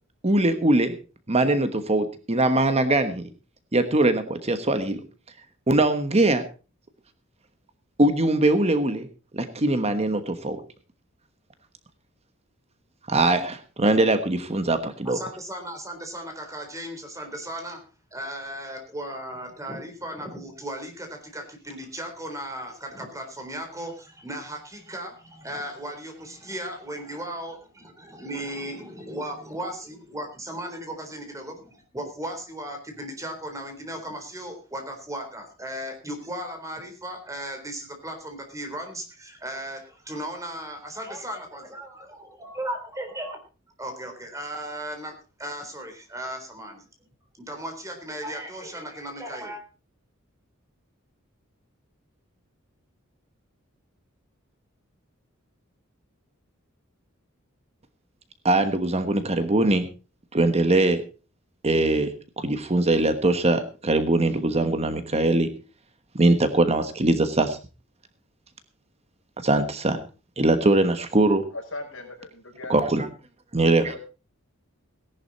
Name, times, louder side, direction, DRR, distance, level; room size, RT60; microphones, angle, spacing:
voice 1, 0.2-0.9 1.3-3.2 3.7-5.0 5.7-6.4 8.0-9.1 9.3-10.6 13.1-15.2 58.4-59.9 60.3-61.0 61.6-65.5 66.1-67.6 69.4-70.0 70.4-71.4 72.7-73.1 73.5-73.9, right 2 dB, 30° right, 9 dB, 1.2 m, -21 dB
voice 2, 15.0-17.8 18.1-43.4 43.8-45.1 45.4-46.8 47.4-49.6, right 1 dB, 15° right, 4 dB, 3.9 m, -36 dB
voice 3, 71.5-72.8 73.8-74.0, left 2 dB, 65° left, 1 dB, 5.8 m, -38 dB
17.5 x 11.0 x 4.1 m, 0.33 s
head